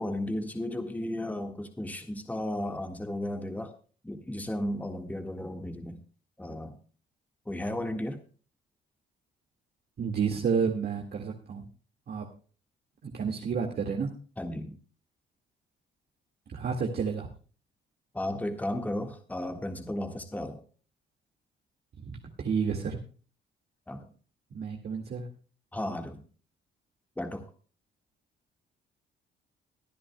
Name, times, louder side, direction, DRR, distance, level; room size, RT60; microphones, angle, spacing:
voice 1, 0.0-3.7 4.0-6.0 6.4-6.8 7.5-8.2 14.4-14.8 18.1-20.6 23.9-24.1 25.7-26.2 27.2-27.4, left 1 dB, 10° left, 1.6 m, -34 dB
voice 2, 10.0-11.6 12.1-12.3 13.0-14.1 16.5-17.3 22.0-23.0 24.5-25.3, right 6 dB, 55° right, 2.0 m, -30 dB
22.5 x 10.0 x 2.3 m
cardioid pair, 90°, 20 cm